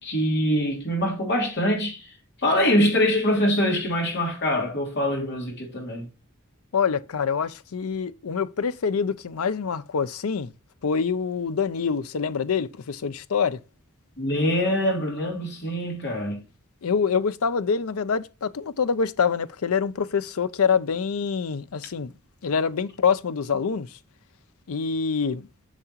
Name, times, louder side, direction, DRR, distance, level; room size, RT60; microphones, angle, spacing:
voice 1, 0.0-2.1 2.4-6.1 14.2-16.4, equal, 50° left, 3.0 m, -24 dB
voice 2, 6.7-10.5 10.8-13.6 16.8-22.1 22.4-23.9 24.7-25.5, left 6 dB, 75° left, 0.5 m, -25 dB
7.4 x 6.7 x 2.9 m
head